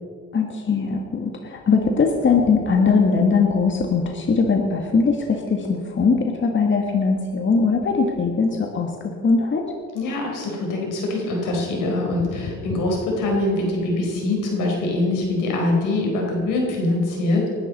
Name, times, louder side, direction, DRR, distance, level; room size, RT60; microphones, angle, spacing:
voice 1, 0.3-9.6, left 4 dB, 40° left, 3 dB, 1.6 m, -20 dB
voice 2, 9.9-17.5, left 2 dB, 90° left, -1 dB, 4.3 m, -23 dB
20.0 x 12.0 x 4.2 m, 2.1 s
cardioid pair, 90°, 30 cm